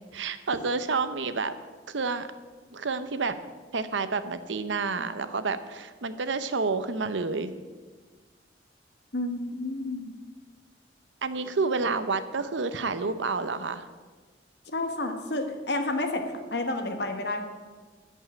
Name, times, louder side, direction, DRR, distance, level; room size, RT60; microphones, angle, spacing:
voice 1, 0.1-1.5 1.9-2.3 2.7-3.3 3.7-7.5 11.2-13.9, right 4 dB, 85° right, 11 dB, 0.8 m, -29 dB
voice 2, 9.1-10.1 14.7-16.2 16.5-17.4, left 2 dB, 65° left, 5 dB, 1.3 m, -30 dB
14.0 x 5.5 x 8.4 m, 1.4 s
head